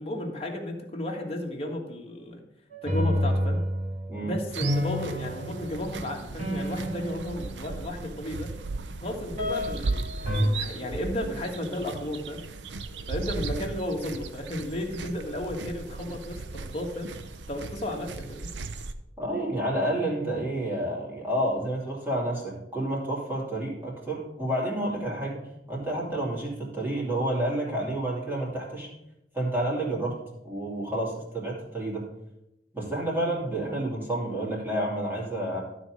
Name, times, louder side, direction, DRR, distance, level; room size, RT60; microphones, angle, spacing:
voice 1, 0.0-2.4 2.8-3.6 4.2-8.5 9.0-12.4 13.1-17.1 17.5-18.5, left 1 dB, 35° left, 0 dB, 1.6 m, -33 dB
sound 1, 2.7-8.3 9.4-9.9 10.3-10.4, equal, 45° right, 2.9 m, -30 dB
sound 2, 4.5-18.9, right 3 dB, 75° right, 0.6 m, -37 dB
voice 2, 19.2-28.9 29.3-30.2 30.4-32.1 32.7-35.6, right 1 dB, 10° right, -5 dB, 2.7 m, -29 dB
12.5 x 4.2 x 6.3 m, 0.87 s
head